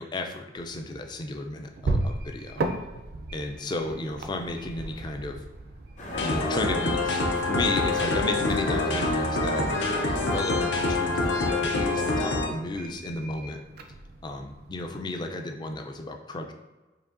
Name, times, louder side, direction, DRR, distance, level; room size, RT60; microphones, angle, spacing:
voice 1, 0.0-2.6 3.3-5.4 6.2-9.8 10.2-13.6 14.2-16.5, left 2 dB, 25° left, 4 dB, 0.3 m, -33 dB
sound 1, 0.6-14.9, right 2 dB, 55° right, 0.4 m, -37 dB
sound 2, 6.0-12.2, left 1 dB, 40° left, 0.8 m, -39 dB
sound 3, 6.1-12.5, left 2 dB, 75° left, 0.6 m, -26 dB
4.8 x 2.6 x 2.5 m, 1.2 s
head